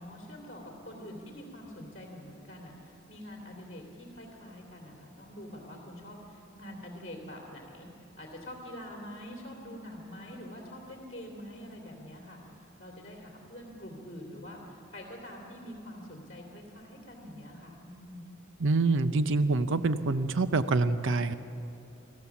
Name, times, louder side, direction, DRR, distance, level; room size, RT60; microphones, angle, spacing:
voice 1, 0.0-18.3, equal, 35° left, 0 dB, 2.8 m, -45 dB
voice 2, 18.6-21.3, right 3 dB, 60° right, 12 dB, 0.6 m, -26 dB
26.0 x 15.0 x 7.2 m, 2.7 s
head